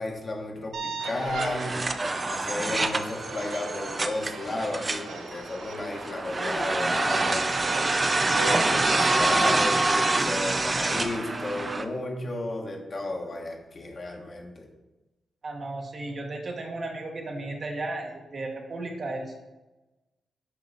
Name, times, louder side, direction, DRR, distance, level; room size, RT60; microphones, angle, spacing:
voice 1, 0.0-1.7 2.2-7.5 8.4-14.7, left 2 dB, 40° left, 1 dB, 1.4 m, -33 dB
sound 1, 0.7-11.0, right 4 dB, 90° right, 0.8 m, -37 dB
sound 2, 1.0-11.8, right 2 dB, 30° right, 0.6 m, -26 dB
voice 2, 15.4-19.4, right 2 dB, 45° right, 1 dB, 1.3 m, -34 dB
7.6 x 4.8 x 4.0 m, 1.1 s
cardioid pair, 90°, 0 cm